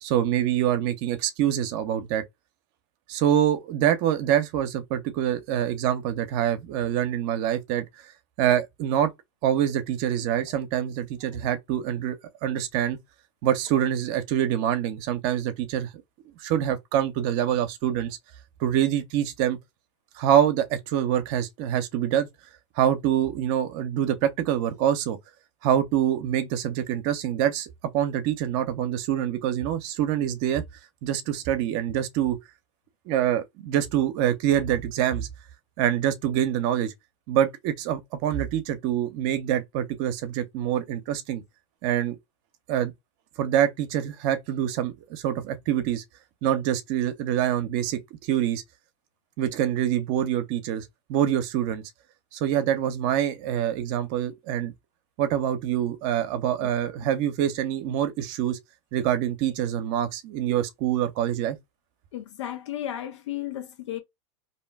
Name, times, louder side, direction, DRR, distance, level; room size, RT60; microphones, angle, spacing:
voice 1, 0.0-2.2 3.1-8.1 8.4-9.1 9.4-12.2 12.4-13.0 13.4-15.9 16.4-18.2 18.6-19.6 20.1-22.3 22.8-25.2 25.6-27.7 27.9-30.6 31.0-32.4 33.1-35.3 35.8-36.9 37.3-41.4 41.8-42.2 42.7-42.9 43.4-46.0 46.4-48.6 49.4-51.8 52.3-54.7 55.2-58.6 58.9-61.6, right 10 dB, 55° right, 0.6 m, -25 dB
voice 2, 62.1-64.0, left 12 dB, 80° left, 0.8 m, -34 dB
2.6 x 2.1 x 3.3 m
supercardioid pair, 120°, 15 cm